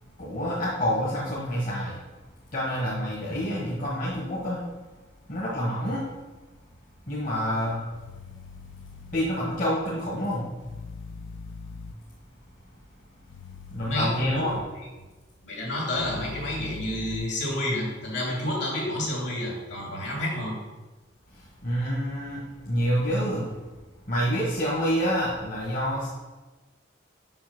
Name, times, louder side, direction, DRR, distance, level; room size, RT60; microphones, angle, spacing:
voice 1, 0.2-2.0 2.5-4.7 5.3-6.1 7.0-7.8 9.1-10.5 13.7-14.6 21.3-23.5 24.0-26.1, equal, 45° left, -5 dB, 1.4 m, -28 dB
sound 1, 7.9-9.3 10.6-11.9 13.3-14.6 15.9-17.3, left 4 dB, 80° left, 0.5 m, -42 dB
voice 2, 13.8-14.4 15.4-20.6, left 1 dB, 65° left, -1 dB, 2.7 m, -30 dB
5.9 x 5.7 x 6.0 m, 1.2 s
head